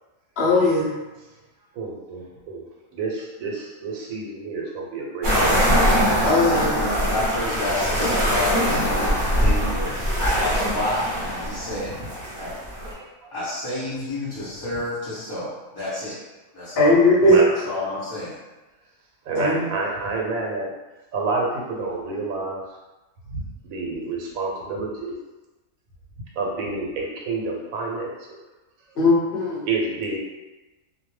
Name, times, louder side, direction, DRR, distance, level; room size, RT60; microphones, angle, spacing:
voice 1, 0.4-0.9 6.2-6.8 16.8-17.4 19.4-19.6 29.0-29.6, left 2 dB, 55° left, -5 dB, 0.8 m, -18 dB
voice 2, 1.8-2.6 2.9-5.6 11.7-12.0 12.9-13.1 17.2-17.6 19.3-20.7 21.1-22.6 23.3-25.2 26.4-28.1 29.7-30.2, right 3 dB, 80° right, -1 dB, 1.1 m, -29 dB
sound 1, 5.2-12.9, equal, 45° right, 1.0 m, -22 dB
voice 3, 6.3-9.9 10.2-11.9 12.4-12.5 13.3-16.2 16.5-17.2 17.6-18.4, left 1 dB, 25° left, -12 dB, 0.5 m, -29 dB
2.4 x 2.1 x 3.1 m, 1.1 s
omnidirectional pair, 1.4 m